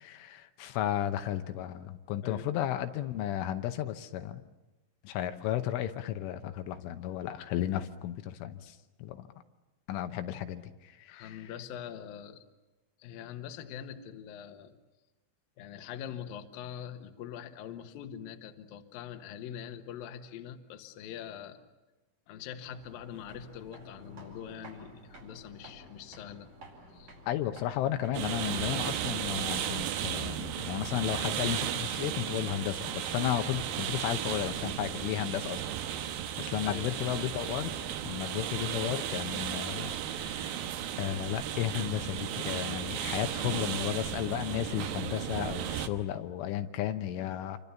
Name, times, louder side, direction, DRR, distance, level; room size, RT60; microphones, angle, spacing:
voice 1, 0.0-4.4 5.0-9.3 9.9-11.5 27.3-35.6 35.9-37.7 38.1-40.6 41.0-47.6, left 12 dB, 80° left, 8 dB, 3.4 m, -34 dB
voice 2, 11.1-12.4 13.0-14.8 15.6-21.6 22.3-26.5 26.9-27.2 36.6-37.2, left 9 dB, 65° left, 6 dB, 2.6 m, -43 dB
sound 1, 22.6-37.9, right 1 dB, 40° right, 5.9 m, -54 dB
sound 2, 28.1-45.9, right 10 dB, 80° right, 2.1 m, -35 dB
28.5 x 24.5 x 7.1 m, 1.1 s
omnidirectional pair, 5.7 m